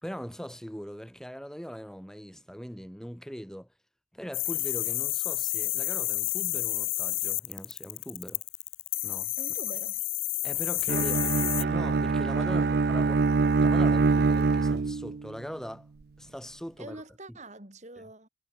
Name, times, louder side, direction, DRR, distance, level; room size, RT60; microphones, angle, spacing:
voice 1, 0.0-3.7 4.1-8.4 9.0-9.3 10.4-11.2 11.6-13.2 13.6-15.9 16.2-17.0 17.3-17.4, equal, 5° left, 4.2 m, -41 dB
sound 1, 4.3-11.6, left 19 dB, 85° left, 1.0 m, -30 dB
voice 2, 9.4-10.0 10.9-11.3 12.4-12.9 16.8-18.3, right 1 dB, 35° right, 3.5 m, -45 dB
Bowed string instrument, 10.9-15.3, right 4 dB, 50° right, 0.4 m, -24 dB
head